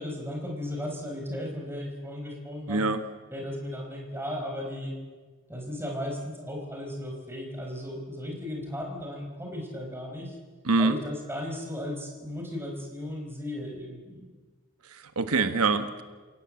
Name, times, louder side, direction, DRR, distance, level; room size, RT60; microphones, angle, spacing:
voice 1, 0.0-2.8 3.3-4.9 5.5-10.4 10.8-14.3, left 1 dB, 10° right, 1 dB, 4.9 m, -35 dB
voice 2, 2.7-3.0 10.6-11.0 14.8-16.0, right 3 dB, 85° right, 9 dB, 1.4 m, -25 dB
28.5 x 18.0 x 7.8 m, 1.4 s
head